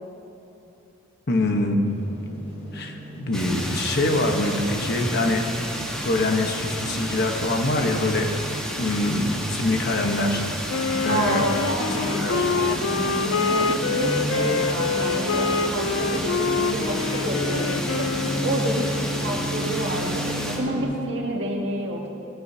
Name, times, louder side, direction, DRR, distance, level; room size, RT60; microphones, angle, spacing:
voice 1, 1.3-1.8 2.7-5.4 6.0-8.3 8.8-10.7 11.0-11.5 12.1-12.4, left 2 dB, 55° left, 3 dB, 1.2 m, -24 dB
Bus starting driving stopping, 1.8-20.8, equal, 35° left, 3.2 m, -34 dB
sound 1, 3.3-20.6, equal, 5° left, 1.4 m, -32 dB
Wind instrument woodwind instrument, 10.7-18.8, left 5 dB, 70° left, 0.4 m, -26 dB
voice 2, 11.1-22.1, right 1 dB, 60° right, -1 dB, 1.8 m, -29 dB
16.5 x 16.0 x 2.8 m, 2.9 s
head